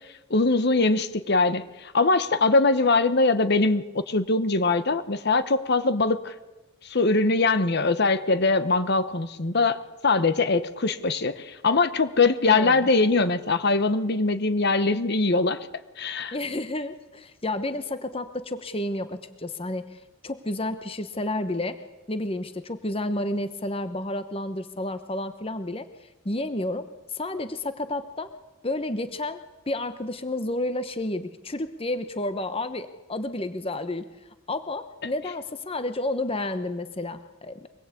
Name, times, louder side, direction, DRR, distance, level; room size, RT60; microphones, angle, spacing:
voice 1, 0.3-6.3 6.8-15.7 16.0-16.3, left 3 dB, 50° left, 11 dB, 1.0 m, -22 dB
voice 2, 12.5-12.9 16.3-21.8 22.1-25.9 26.2-26.9 27.1-28.3 28.6-29.4 29.7-34.1 34.5-37.7, left 1 dB, 25° left, 10 dB, 1.0 m, -31 dB
24.0 x 21.0 x 8.4 m, 1.1 s
head